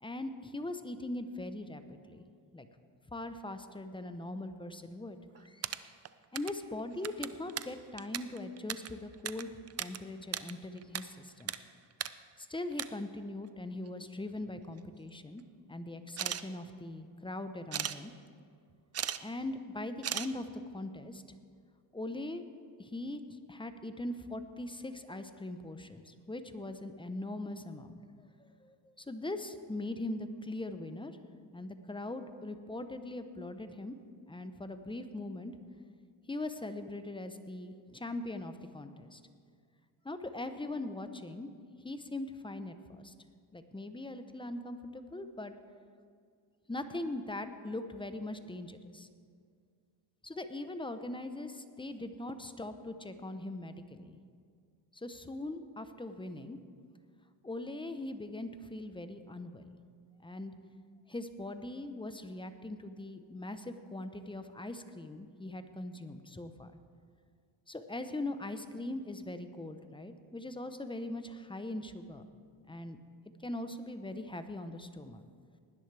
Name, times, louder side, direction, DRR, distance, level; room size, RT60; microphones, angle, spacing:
voice 1, 0.0-2.2 2.5-2.7 3.1-5.9 6.3-9.5 9.8-11.5 12.4-15.4 15.7-18.1 19.2-21.2 21.9-22.4 22.8-31.1 31.5-33.9 34.3-35.5 36.3-39.2 40.0-41.5 41.8-43.1 43.5-45.5 46.7-49.1 50.2-54.2 54.9-56.6 57.4-59.8 60.2-60.5 61.1-66.7 67.7-72.3 72.7-73.0 73.4-75.2, left 2 dB, 10° left, 9 dB, 0.8 m, -41 dB
sound 1, 5.3-6.6 6.9-10.0 10.2-11.0 11.3-11.6 11.9-12.1 12.5-12.9 13.9-14.0 14.3-14.9 16.1-16.4 17.7-18.0 18.7-19.2 19.5-19.6 20.0-20.3, right 10 dB, 35° right, 0.4 m, -37 dB
19.5 x 10.5 x 3.4 m, 2.1 s
cardioid pair, 85°, 47 cm